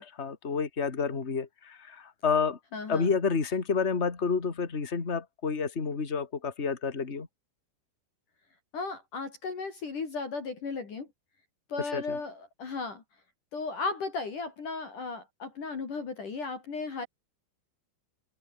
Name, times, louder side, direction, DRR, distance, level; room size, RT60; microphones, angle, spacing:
voice 1, 0.0-2.6 2.9-7.3 11.9-12.2, left 5 dB, 25° left, 1.4 m, -29 dB
voice 2, 2.7-3.1 8.7-11.1 11.7-13.0 13.5-17.1, left 4 dB, 45° left, 4.9 m, -35 dB
omnidirectional pair, 5.4 m